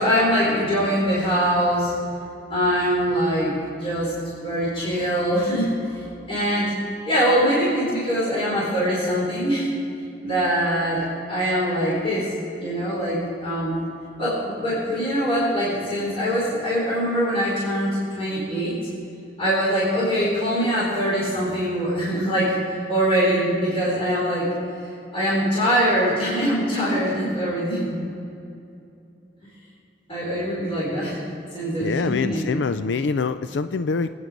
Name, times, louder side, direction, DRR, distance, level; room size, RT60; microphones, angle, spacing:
voice 1, 0.0-1.9 2.5-4.1 4.4-5.7 6.3-6.8 7.1-9.7 10.2-12.3 12.6-13.8 14.2-18.7 19.4-24.5 25.1-28.0 30.1-31.2 31.5-32.6, equal, 30° left, -7 dB, 4.6 m, -23 dB
voice 2, 31.8-34.2, left 4 dB, 90° left, 11 dB, 0.4 m, -25 dB
24.5 x 9.6 x 5.2 m, 2.6 s
head